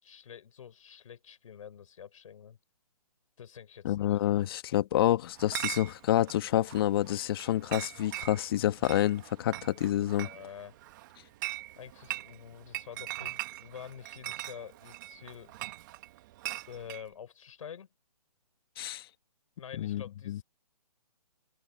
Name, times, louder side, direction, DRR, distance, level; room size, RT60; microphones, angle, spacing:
voice 1, 0.0-2.6 3.4-4.2 10.2-10.8 11.7-15.5 16.7-17.9 19.6-20.4, left 8 dB, 55° left, 4.7 m, -47 dB
voice 2, 3.8-10.3 18.8-19.0 19.8-20.4, left 13 dB, 35° left, 1.4 m, -28 dB
Chatter / Chink clink, 5.4-17.1, right 16 dB, 30° right, 1.9 m, -41 dB
hypercardioid pair, 155°, 20 cm